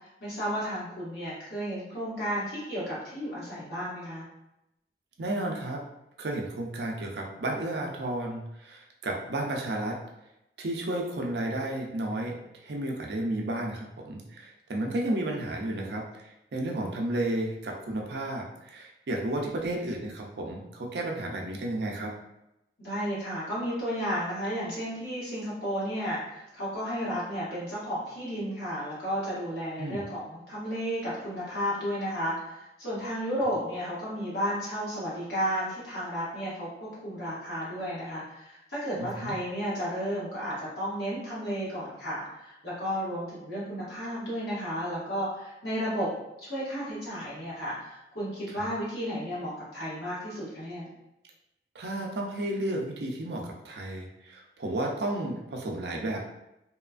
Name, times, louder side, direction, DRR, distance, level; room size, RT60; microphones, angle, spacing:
voice 1, 0.2-4.2 22.8-46.1 46.4-50.9, equal, 60° left, -9 dB, 1.3 m, -33 dB
voice 2, 5.2-5.8 6.2-10.0 10.6-12.3 12.6-22.1 29.8-30.0 39.0-39.4 48.5-48.7 51.7-56.2, right 1 dB, 65° right, 0 dB, 0.5 m, -32 dB
2.8 x 2.4 x 2.3 m, 0.88 s
head